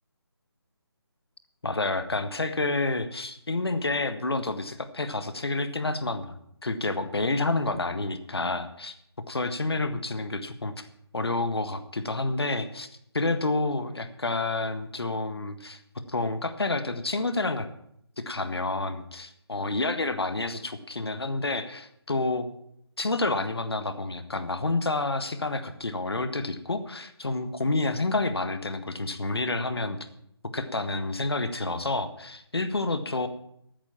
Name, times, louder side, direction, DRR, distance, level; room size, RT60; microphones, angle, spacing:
voice 1, 1.6-6.4 6.6-8.9 9.3-10.9 11.1-12.9 13.1-15.8 16.1-17.7 18.2-22.5 23.0-30.0 30.5-33.3, left 2 dB, 70° left, 10 dB, 1.6 m, -29 dB
13.0 x 9.1 x 7.3 m, 0.73 s
figure-of-eight pair, 155°, 14 cm